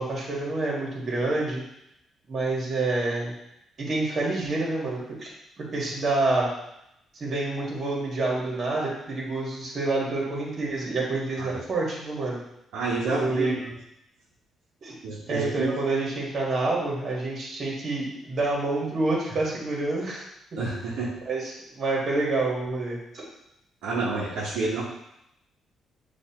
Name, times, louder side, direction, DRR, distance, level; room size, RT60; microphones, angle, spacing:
voice 1, 0.0-1.6 2.3-3.3 3.8-5.3 5.6-6.5 7.2-12.4 13.0-13.5 14.8-14.9 15.3-20.2 21.2-23.2, right 2 dB, 50° right, -3 dB, 1.6 m, -27 dB
voice 2, 12.7-13.7 15.0-15.7 20.6-21.1 23.8-24.8, right 3 dB, 90° right, -6 dB, 1.0 m, -29 dB
6.6 x 2.8 x 2.9 m, 0.81 s
cardioid pair, 90°, 0 cm